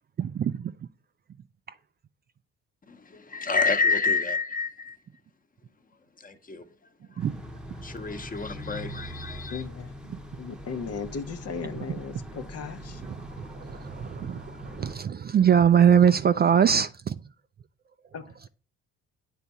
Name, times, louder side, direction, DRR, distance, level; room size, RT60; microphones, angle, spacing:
voice 1, 0.2-0.7 7.2-7.3 13.4-17.1, right 8 dB, 30° right, 0.4 m, -22 dB
voice 2, 2.9-5.0 6.2-6.6 7.1-7.3 7.8-9.6, left 4 dB, 25° left, 1.0 m, -28 dB
sound 1, 7.2-15.0, equal, 5° right, 0.9 m, -42 dB
voice 3, 9.5-9.9 10.4-13.0 18.1-18.5, left 5 dB, 50° left, 0.8 m, -36 dB
8.4 x 3.5 x 4.0 m
supercardioid pair, 65°, 31 cm